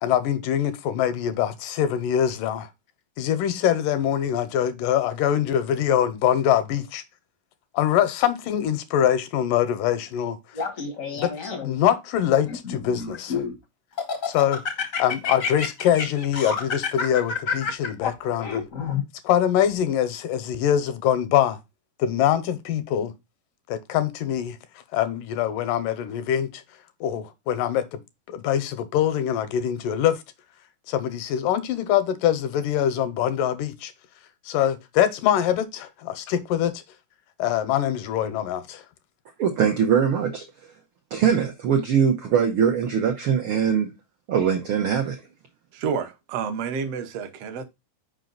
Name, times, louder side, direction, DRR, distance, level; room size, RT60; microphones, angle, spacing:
voice 1, 0.0-2.7 3.2-7.0 7.7-10.6 11.1-11.3 11.6-13.4 14.3-14.6 15.0-18.7 19.2-21.6 22.0-23.1 23.7-24.6 24.9-26.6 27.0-28.0 28.3-30.2 30.9-33.9 34.5-36.8 37.4-38.9, left 10 dB, 85° left, 2.4 m, -24 dB
Laughter, 10.5-11.8 12.5-13.5 14.0-19.0, left 6 dB, 70° left, 0.7 m, -29 dB
voice 2, 39.4-40.5 41.1-43.9 44.3-45.2, right 7 dB, 90° right, 1.1 m, -21 dB
voice 3, 45.7-47.6, right 6 dB, 70° right, 1.5 m, -29 dB
5.6 x 5.1 x 3.8 m
omnidirectional pair, 3.8 m